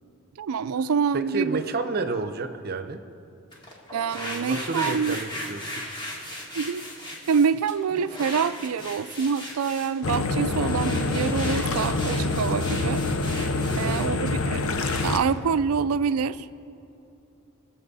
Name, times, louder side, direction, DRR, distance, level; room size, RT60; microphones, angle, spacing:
voice 1, 0.4-1.6 3.9-5.2 6.5-6.8 7.3-13.0 13.8-14.6 15.0-16.5, right 6 dB, 85° right, 15 dB, 0.4 m, -26 dB
voice 2, 1.1-3.0 4.2-5.8 13.7-14.0, right 3 dB, 45° right, 9 dB, 0.7 m, -30 dB
sound 1, 3.5-15.2, left 1 dB, 20° left, 1.8 m, -37 dB
sound 2, 10.0-15.2, left 3 dB, 70° left, 0.7 m, -26 dB
21.5 x 7.8 x 4.1 m, 2.7 s
head